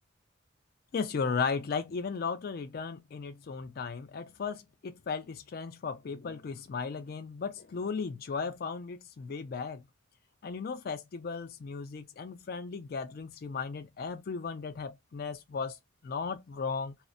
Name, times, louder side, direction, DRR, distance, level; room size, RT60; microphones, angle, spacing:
voice 1, 0.9-9.8 10.4-15.8 16.0-16.9, left 5 dB, 50° left, 0.4 m, -36 dB
2.4 x 2.1 x 2.5 m
head